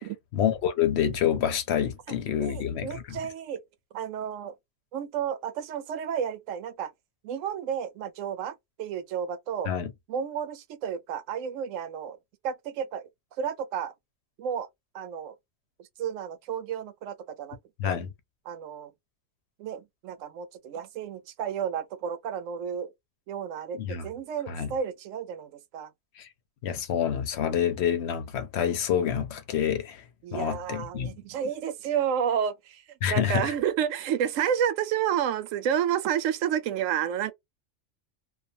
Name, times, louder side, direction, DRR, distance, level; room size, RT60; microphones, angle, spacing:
voice 1, 0.3-3.2 9.7-9.9 17.8-18.1 23.7-24.1 24.5-24.7 26.2-26.3 26.6-30.0 30.3-31.1 33.0-33.5, left 9 dB, 65° left, 0.8 m, -27 dB
voice 2, 2.4-3.6 3.9-4.5 4.9-6.9 7.2-9.7 10.1-12.2 12.4-13.1 13.4-13.9 14.4-14.7 14.9-15.3 16.0-17.6 17.8-18.0 18.5-18.9 19.6-22.9 23.3-25.9 30.2-32.8 33.1-37.3, right 8 dB, 85° right, 0.9 m, -31 dB
2.4 x 2.3 x 2.7 m
omnidirectional pair, 1.3 m